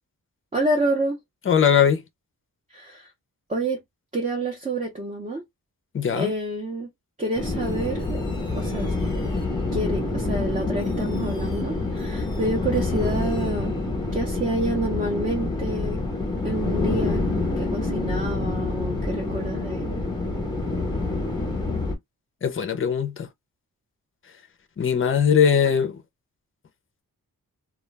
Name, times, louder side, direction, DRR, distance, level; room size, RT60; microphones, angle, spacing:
voice 1, 0.5-1.2 2.7-3.1 3.5-3.8 4.1-5.4 6.2-6.9 7.2-8.2 8.5-8.9 9.7-13.8 14.1-16.0 16.4-17.3 17.6-20.0, right 1 dB, 20° right, 0.6 m, -28 dB
voice 2, 1.4-2.0 5.9-6.3 22.4-23.3 24.8-26.0, left 7 dB, 35° left, 0.5 m, -20 dB
sound 1, 7.4-22.0, left 2 dB, 10° left, 0.8 m, -27 dB
2.3 x 2.2 x 3.2 m
wide cardioid pair, 165°, 36 cm